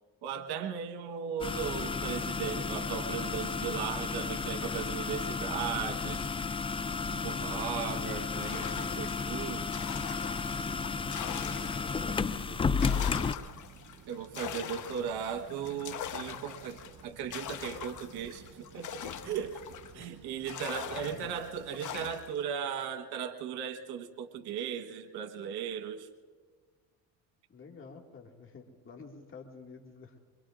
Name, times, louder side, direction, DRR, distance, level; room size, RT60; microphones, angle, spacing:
voice 1, 0.2-6.3 7.0-9.7 14.1-19.6 19.9-26.1, right 8 dB, 75° right, 8 dB, 1.4 m, -37 dB
sound 1, 1.4-13.3, left 5 dB, 15° left, 0.3 m, -33 dB
voice 2, 7.8-8.3 11.4-13.4 19.9-20.1 20.9-21.3 27.5-30.2, left 4 dB, 30° left, 1 dB, 2.1 m, -49 dB
sound 2, 8.3-12.2 12.5-20.1 20.5-22.4, left 9 dB, 50° left, 1.1 m, -42 dB
sound 3, 10.6-21.8, right 6 dB, 50° right, 1.4 m, -55 dB
25.0 x 23.0 x 2.5 m, 1.5 s
supercardioid pair, 80°, 39 cm